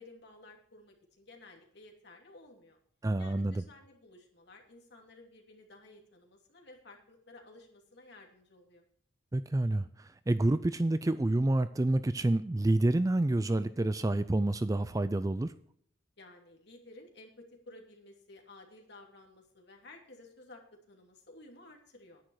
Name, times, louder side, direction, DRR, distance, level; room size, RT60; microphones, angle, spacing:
voice 1, 0.0-2.8 3.2-8.9 16.2-22.2, left 2 dB, 55° left, 2 dB, 2.7 m, -54 dB
voice 2, 3.0-3.6 9.3-15.5, right 1 dB, 15° right, 13 dB, 0.4 m, -28 dB
10.5 x 10.0 x 4.8 m, 0.66 s
head